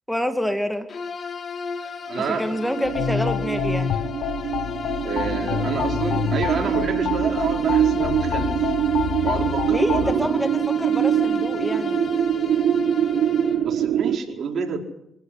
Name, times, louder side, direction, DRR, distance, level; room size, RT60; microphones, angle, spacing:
voice 1, 0.1-0.9 2.2-4.0 9.7-12.0, equal, 5° left, 8 dB, 2.3 m, -27 dB
Bowed string instrument, 0.9-13.7, left 5 dB, 45° left, 3.8 m, -33 dB
voice 2, 2.1-2.4 5.0-8.7 9.2-10.3 13.6-14.8, right 5 dB, 60° right, 3 dB, 4.9 m, -28 dB
sound 1, 2.6-14.2, right 10 dB, 75° right, 1.1 m, -24 dB
sound 2, 2.8-10.1, left 9 dB, 75° left, 1.3 m, -28 dB
25.5 x 15.5 x 9.9 m, 0.80 s
cardioid pair, 85°, 0 cm